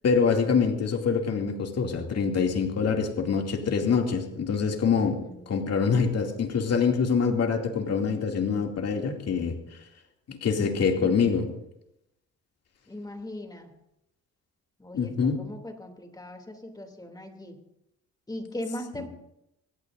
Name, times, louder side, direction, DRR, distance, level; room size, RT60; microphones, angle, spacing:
voice 1, 0.0-5.2 5.5-9.6 10.3-11.5 14.9-15.4 19.0-19.1, left 5 dB, 55° left, 2 dB, 2.6 m, -25 dB
voice 2, 5.2-5.9 12.9-13.8 14.8-17.6 18.3-19.1, left 1 dB, 15° left, 4 dB, 2.8 m, -40 dB
25.0 x 16.5 x 2.6 m, 0.84 s
cardioid pair, 90°, 30 cm